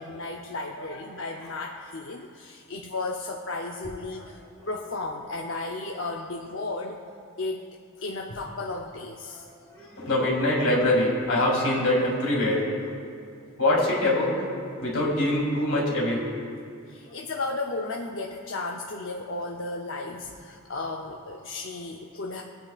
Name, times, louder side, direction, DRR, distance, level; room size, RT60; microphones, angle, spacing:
voice 1, 0.0-4.4 4.7-7.0 7.4-7.7 8.0-9.5 16.9-22.4, left 2 dB, 60° left, 0 dB, 0.6 m, -34 dB
voice 2, 0.5-1.0 1.3-1.5 4.2-4.3 4.6-4.7 9.3-12.7 13.6-14.4 14.8-16.3 20.8-20.9, left 1 dB, 90° left, -3 dB, 3.2 m, -25 dB
23.0 x 9.0 x 2.4 m, 2.5 s
head